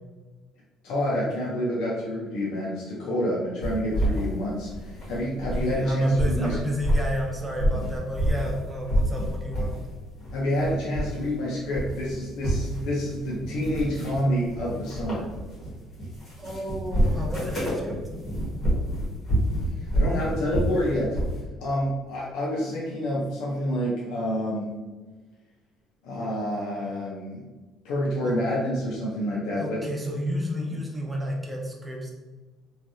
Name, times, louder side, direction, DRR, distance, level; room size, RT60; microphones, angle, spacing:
voice 1, 0.8-6.6 10.3-15.3 19.8-21.2 21.6-24.8 26.0-27.5 27.8-29.8, equal, 75° left, -4 dB, 0.6 m, -28 dB
sound 1, 3.6-5.8 6.1-8.6 8.9-9.8 10.2-11.3 11.6-21.4, equal, 25° left, 1.3 m, -28 dB
voice 2, 5.5-9.8 16.4-18.0 28.2-28.4 29.5-32.1, equal, 10° right, -1 dB, 0.4 m, -31 dB
3.2 x 2.3 x 2.6 m, 1.3 s
cardioid pair, 170°, 0 cm